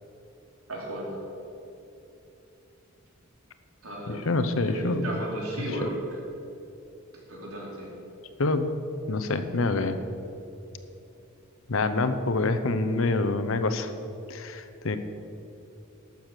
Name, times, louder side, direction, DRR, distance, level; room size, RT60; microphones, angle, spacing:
voice 1, 0.7-1.2 3.8-4.3 4.6-6.0 7.3-7.9, right 1 dB, 85° right, -2 dB, 3.0 m, -34 dB
voice 2, 4.1-5.1 5.7-5.8 8.4-8.7 9.1-10.0 11.7-13.9 14.3-15.0, left 3 dB, 65° left, 10 dB, 0.8 m, -26 dB
12.0 x 7.1 x 6.6 m, 2.9 s
head